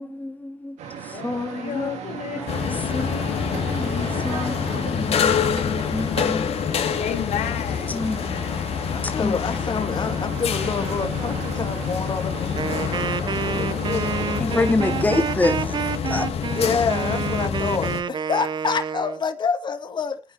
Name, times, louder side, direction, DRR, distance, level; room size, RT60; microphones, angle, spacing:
voice 1, 0.0-1.9 2.4-2.7 2.9-6.5 7.9-8.7 9.2-9.8 14.4-15.8 16.1-16.3, left 2 dB, 15° left, 1.9 m, -28 dB
sound 1, 0.8-16.0, right 7 dB, 85° right, 2.7 m, -36 dB
voice 2, 1.1-8.9, left 9 dB, 80° left, 2.3 m, -35 dB
sound 2, 2.5-18.0, left 7 dB, 60° left, 2.5 m, -26 dB
voice 3, 8.9-14.8 15.1-15.2 16.5-20.2, left 5 dB, 40° left, 2.4 m, -28 dB
Wind instrument woodwind instrument, 12.6-19.2, right 7 dB, 40° right, 0.8 m, -29 dB
24.5 x 9.6 x 3.0 m
cardioid pair, 95°, 11 cm